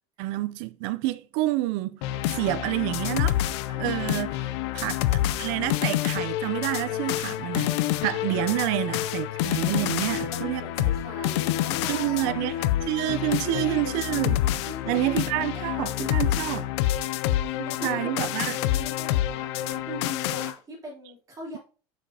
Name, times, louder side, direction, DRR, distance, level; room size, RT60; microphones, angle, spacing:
voice 1, 0.2-2.0 2.3-3.4 3.8-7.8 8.0-10.9 11.9-12.6 12.8-14.4 14.9-16.7 17.6-18.6, right 17 dB, 65° right, 0.6 m, -28 dB
sound 1, 2.0-20.5, left 13 dB, 80° left, 0.4 m, -28 dB
voice 2, 3.7-4.1 8.3-8.6 9.7-12.6 12.9-13.0 13.4-14.0 14.6-15.2 15.5-16.0 17.4-21.6, equal, 25° right, 3.2 m, -40 dB
6.6 x 5.1 x 2.8 m
supercardioid pair, 125°, 14 cm